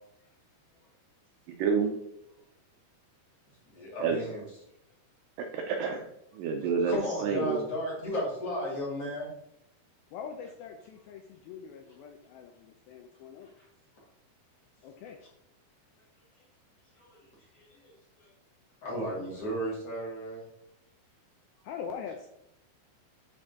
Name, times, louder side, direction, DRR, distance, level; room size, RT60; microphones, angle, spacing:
voice 1, 1.5-1.9 4.0-4.2 5.5-6.1 6.4-7.6, right 5 dB, 90° right, 3 dB, 1.9 m, -28 dB
voice 2, 3.7-4.4 6.8-9.3 13.6-13.7 17.0-17.2 17.5-17.9 18.2-18.3 18.8-20.4, equal, 40° left, -5 dB, 2.8 m, -34 dB
voice 3, 10.1-13.5 14.8-15.2 21.7-22.3, left 7 dB, 80° left, 4 dB, 2.2 m, -43 dB
9.3 x 4.4 x 3.5 m, 0.79 s
omnidirectional pair, 4.7 m